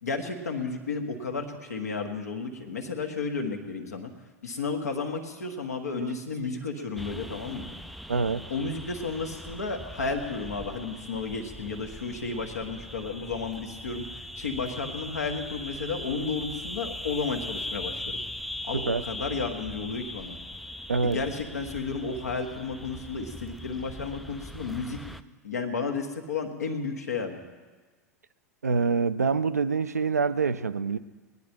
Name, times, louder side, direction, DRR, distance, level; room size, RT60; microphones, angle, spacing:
voice 1, 0.0-4.1 4.4-7.7 8.5-18.2 18.6-20.4 21.0-25.0 25.4-27.4, left 4 dB, 75° left, 1.6 m, -32 dB
voice 2, 6.0-6.5 8.1-8.5 18.7-19.0 20.9-21.2 28.6-31.0, right 5 dB, 80° right, 0.5 m, -26 dB
sound 1, 7.0-25.2, left 1 dB, ahead, 0.4 m, -40 dB
20.0 x 9.9 x 4.5 m
figure-of-eight pair, 85°, 9 cm